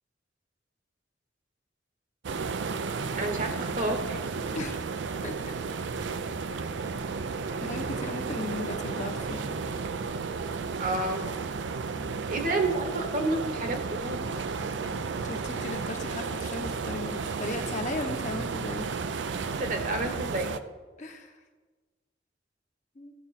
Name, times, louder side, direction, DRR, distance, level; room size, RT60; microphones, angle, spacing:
sound 1, 2.2-20.6, right 4 dB, 80° right, 0.5 m, -33 dB
voice 1, 3.1-4.2 10.8-11.3 12.3-14.2 19.6-20.5, right 2 dB, 45° right, 5 dB, 1.1 m, -30 dB
voice 2, 7.6-9.4 11.9-12.2 15.2-18.9 21.0-21.4 22.9-23.1, left 2 dB, 40° left, 3 dB, 1.0 m, -37 dB
15.0 x 7.4 x 4.2 m, 1.4 s
head